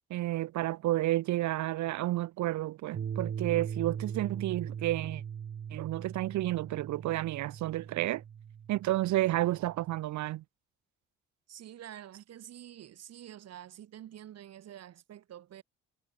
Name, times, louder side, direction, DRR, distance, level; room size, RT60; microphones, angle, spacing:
voice 1, 0.1-5.2 5.7-8.2 8.7-10.4, right 16 dB, 75° right, 0.6 m, -31 dB
sound 1, 2.9-10.0, right 8 dB, 40° right, 1.5 m, -40 dB
voice 2, 11.5-15.6, right 11 dB, 60° right, 1.8 m, -48 dB
cardioid pair, 170°, 29 cm